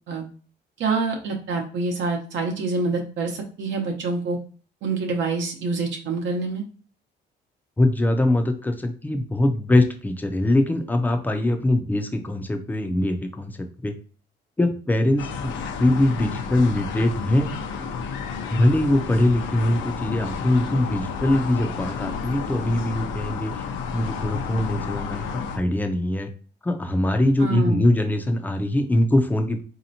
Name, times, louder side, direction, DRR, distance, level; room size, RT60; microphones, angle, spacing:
voice 1, 0.8-4.4 4.8-6.6 27.4-27.8, right 3 dB, 75° right, 2 dB, 0.8 m, -26 dB
voice 2, 7.8-13.9 14.6-15.5 15.8-17.5 18.5-23.5 23.9-26.3 26.6-29.6, left 1 dB, 10° left, 5 dB, 0.4 m, -22 dB
sound 1, 15.2-25.6, left 6 dB, 80° left, 0.6 m, -31 dB
4.1 x 2.8 x 2.7 m, 0.40 s
cardioid pair, 150°, 19 cm